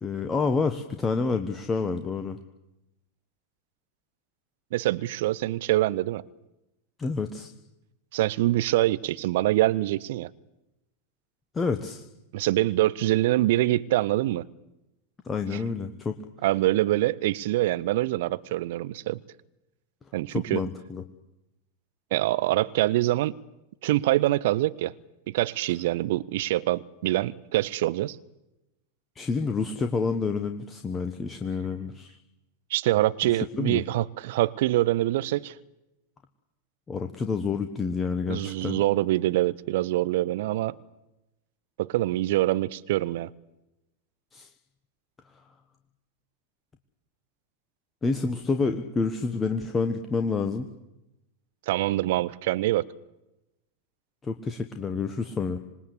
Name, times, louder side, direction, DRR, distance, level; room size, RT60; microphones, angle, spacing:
voice 1, 0.0-2.4 7.0-7.5 11.5-12.0 15.2-16.2 20.3-21.0 29.1-32.2 33.6-33.8 36.9-38.8 44.3-44.5 48.0-50.7 54.2-55.6, left 4 dB, 15° left, 1.4 m, -28 dB
voice 2, 4.7-6.2 8.1-10.3 12.3-14.4 15.5-15.6 16.4-19.2 20.1-20.6 22.1-23.4 23.8-24.9 25.3-28.2 32.7-35.5 38.3-40.8 41.8-43.3 51.7-52.9, right 16 dB, 55° right, 0.8 m, -25 dB
26.5 x 20.5 x 8.4 m
figure-of-eight pair, 90°, 0 cm